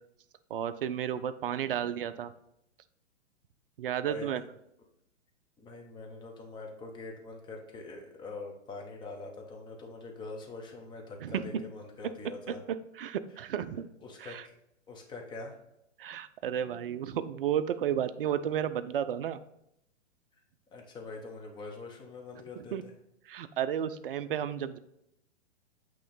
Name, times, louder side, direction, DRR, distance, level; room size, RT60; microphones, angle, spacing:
voice 1, 0.5-2.3 3.8-4.4 11.2-11.6 12.5-13.9 14.2-14.5 16.0-19.4 22.6-22.8 23.3-24.8, right 9 dB, 50° right, 12 dB, 0.5 m, -33 dB
voice 2, 5.6-12.6 14.0-14.4 14.9-15.6 20.7-22.9, left 3 dB, 10° left, 1 dB, 0.8 m, -44 dB
8.3 x 3.0 x 3.9 m, 0.80 s
figure-of-eight pair, 110°, 37 cm